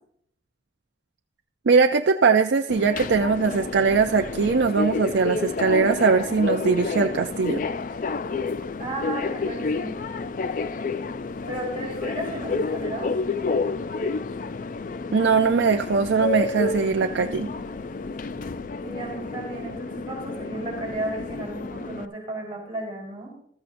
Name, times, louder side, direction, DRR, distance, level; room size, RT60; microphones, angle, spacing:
voice 1, 1.7-7.7 15.1-17.5, right 5 dB, 70° right, 5 dB, 0.4 m, -21 dB
Subway metro underground, 2.7-22.1, left 4 dB, 45° left, 0.3 m, -30 dB
voice 2, 8.8-9.9 11.5-13.1 18.8-23.3, right 2 dB, 25° right, -2 dB, 4.2 m, -34 dB
14.5 x 13.5 x 2.6 m, 0.66 s
head